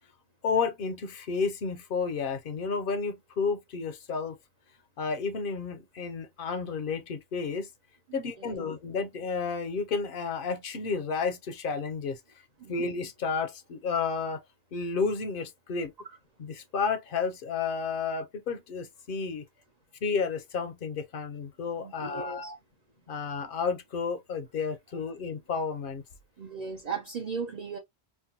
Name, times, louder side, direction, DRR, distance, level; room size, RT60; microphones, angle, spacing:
voice 1, 0.4-4.4 5.0-7.7 8.1-12.2 12.7-14.4 14.7-15.9 16.4-19.5 20.0-22.6 23.1-26.0, left 5 dB, 60° left, 0.8 m, -31 dB
voice 2, 8.1-8.5 12.6-12.7 16.0-16.1 21.8-22.5 26.4-27.8, right 5 dB, 50° right, 0.6 m, -37 dB
4.4 x 2.1 x 2.7 m
omnidirectional pair, 1.1 m